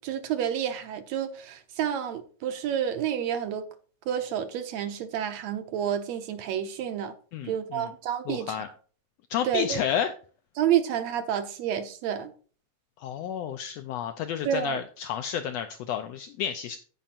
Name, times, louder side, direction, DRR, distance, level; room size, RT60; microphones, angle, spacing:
voice 1, 0.0-3.7 4.1-7.1 7.5-8.7 9.5-9.8 10.6-12.3 14.5-14.8, right 9 dB, 70° right, 1.9 m, -29 dB
voice 2, 7.3-7.9 8.3-8.7 9.3-10.1 13.0-16.8, left 9 dB, 80° left, 1.5 m, -31 dB
16.5 x 5.5 x 2.5 m
omnidirectional pair, 3.4 m